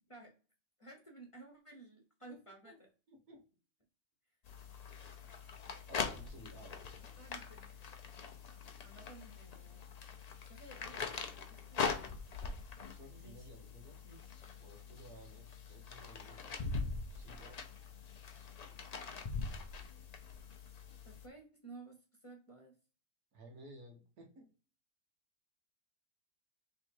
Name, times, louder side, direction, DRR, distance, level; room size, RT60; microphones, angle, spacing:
voice 1, 0.8-2.9 7.2-7.7 8.8-10.2 10.4-12.4 13.0-13.5 14.0-14.3 21.0-22.7, right 3 dB, 25° left, 2 dB, 0.9 m, -55 dB
voice 2, 3.1-3.4 5.9-6.9 13.0-14.0 14.6-16.7 17.1-17.7 23.3-24.5, right 1 dB, 85° right, 2 dB, 1.7 m, -56 dB
sound 1, 4.4-21.3, left 5 dB, 60° left, 0.4 m, -43 dB
3.6 x 3.2 x 4.4 m, 0.36 s
omnidirectional pair, 1.5 m